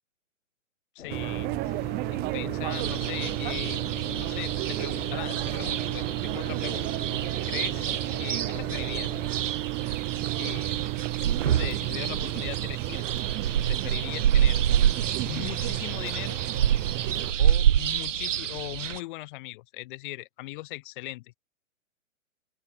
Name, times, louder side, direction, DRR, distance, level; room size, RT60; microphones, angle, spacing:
voice 1, 0.9-3.8 4.1-7.1 7.5-9.1 9.6-9.7 10.4-11.0 11.4-13.1 13.7-14.6 15.2-16.4 17.4-21.4, left 20 dB, 40° left, 1.8 m, -39 dB
sound 1, 1.0-9.3, left 9 dB, 65° left, 4.4 m, -44 dB
sound 2, 1.1-17.3, right 23 dB, 25° right, 1.1 m, -32 dB
sound 3, 2.7-19.0, right 9 dB, 65° right, 1.4 m, -28 dB
open air
hypercardioid pair, 125°, 40 cm